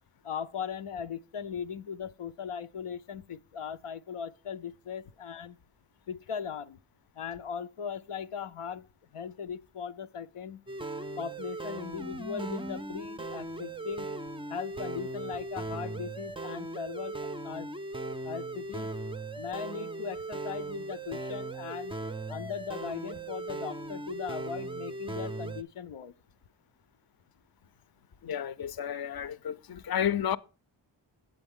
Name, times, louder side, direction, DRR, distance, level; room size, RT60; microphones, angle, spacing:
voice 1, 0.2-5.6 6.1-6.8 7.2-8.9 9.1-10.6 11.2-14.1 14.5-17.7 18.2-18.9 19.3-21.9 22.3-26.1, left 7 dB, 90° left, 0.6 m, -39 dB
sound 1, 10.7-25.6, right 2 dB, 10° right, 0.3 m, -38 dB
voice 2, 28.2-30.4, left 9 dB, 50° left, 0.5 m, -31 dB
8.6 x 8.0 x 3.6 m
wide cardioid pair, 40°, 50 cm